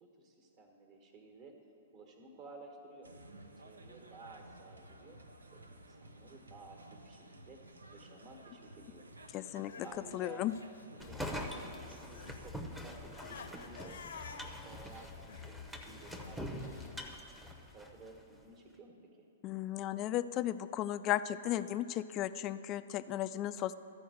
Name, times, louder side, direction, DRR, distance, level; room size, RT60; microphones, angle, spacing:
voice 1, 0.0-1.5 1.9-3.1 3.6-5.2 5.5-7.6 7.9-9.1 9.8-10.5 11.0-14.0 14.3-17.1 17.7-19.3, right 2 dB, 35° right, 3 dB, 1.4 m, -55 dB
sound 1, 3.0-12.5, right 1 dB, 80° right, 0.7 m, -55 dB
voice 2, 9.3-9.9 10.1-10.5 19.4-23.7, left 13 dB, 30° left, 13 dB, 0.3 m, -35 dB
Crying sobbing, 9.4-11.6 11.9-16.9, left 5 dB, 65° left, 0.7 m, -52 dB
sound 2, 11.0-18.2, left 1 dB, 5° right, 0.8 m, -44 dB
13.5 x 4.7 x 6.4 m, 2.7 s
figure-of-eight pair, 115°, 0 cm